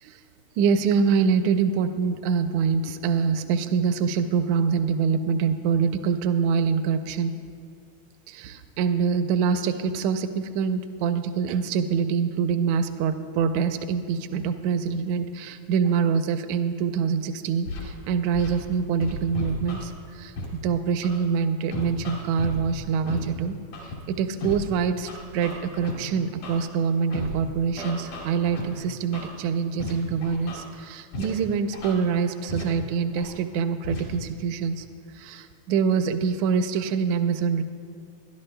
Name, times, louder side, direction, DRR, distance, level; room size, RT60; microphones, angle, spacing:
voice 1, 0.6-7.3 8.3-20.3 20.6-23.6 24.1-34.8 35.1-37.6, right 6 dB, 80° right, 9 dB, 1.7 m, -25 dB
Scratching (performance technique), 17.7-17.8 18.3-18.5 19.0-19.8 20.4-20.5 21.0-21.2 21.7-22.6 23.1-23.2 23.7-23.9 24.4-24.6 25.1-25.9 26.4-26.6 27.1-27.3 27.8-28.6 29.1-29.3 29.8-29.9 30.2-30.6 31.1-31.3 31.7-31.9 32.5-32.6 33.2-33.3 33.8-34.0, left 2 dB, 70° left, 3.8 m, -33 dB
24.5 x 11.5 x 2.2 m, 2.2 s
omnidirectional pair, 3.8 m